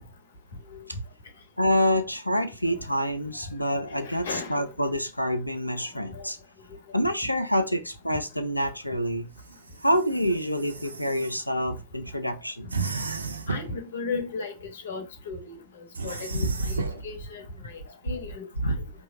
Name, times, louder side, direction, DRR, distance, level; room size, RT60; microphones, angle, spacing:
voice 1, 1.6-6.4 6.9-9.3 9.8-12.7 18.6-18.8, equal, 90° left, 0.5 m, -27 dB
voice 2, 4.0-4.5 6.1-6.3 13.5-15.6 16.0-17.8 18.0-18.7, left 4 dB, 65° left, 1.0 m, -36 dB
sound 1, 9.3-11.4 12.7-13.8 15.9-17.0, right 4 dB, 75° right, 0.4 m, -34 dB
5.3 x 3.0 x 2.6 m
figure-of-eight pair, 90°, 0 cm